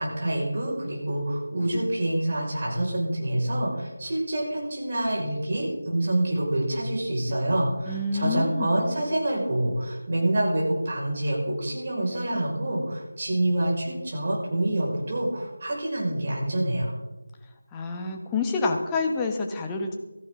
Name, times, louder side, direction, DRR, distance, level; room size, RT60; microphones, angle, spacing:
voice 1, 0.0-17.0, right 1 dB, 40° right, -3 dB, 5.3 m, -27 dB
voice 2, 7.9-8.9 17.7-19.9, left 3 dB, 10° left, 2 dB, 1.1 m, -28 dB
16.5 x 14.0 x 3.8 m, 1.1 s
figure-of-eight pair, 165°, 0 cm